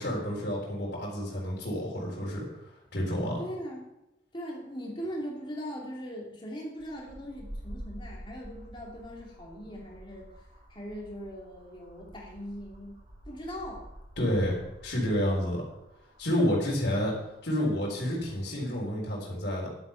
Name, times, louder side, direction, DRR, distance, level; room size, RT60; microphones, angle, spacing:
voice 1, 0.0-2.4 2.9-3.4 14.2-14.6 14.8-15.6 16.2-17.1 17.4-19.7, equal, 55° left, -4 dB, 4.0 m, -29 dB
voice 2, 3.4-3.9 4.3-10.3 10.7-12.9 13.2-13.8, equal, 25° left, -2 dB, 2.8 m, -40 dB
sound 1, 6.8-18.7, equal, 40° right, 3.1 m, -49 dB
11.5 x 8.4 x 5.8 m, 0.91 s
head